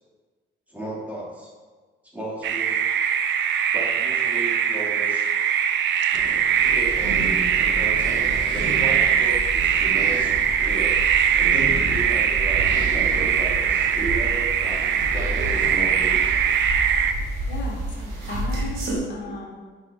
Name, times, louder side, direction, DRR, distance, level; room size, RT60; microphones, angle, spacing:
voice 1, 0.7-1.5 2.1-2.8 3.7-5.3 6.7-11.0 11.4-16.4 18.3-19.4, right 2 dB, 5° right, -5 dB, 1.9 m, -35 dB
sound 1, 2.4-17.1, right 8 dB, 65° right, 0.5 m, -21 dB
sound 2, 6.1-16.4, right 1 dB, 40° right, 1.7 m, -37 dB
sound 3, 6.5-19.0, right 1 dB, 85° right, 1.6 m, -32 dB
voice 2, 17.5-19.6, left 2 dB, 65° left, -1 dB, 1.2 m, -36 dB
5.9 x 5.4 x 3.4 m, 1.4 s
cardioid pair, 90°, 20 cm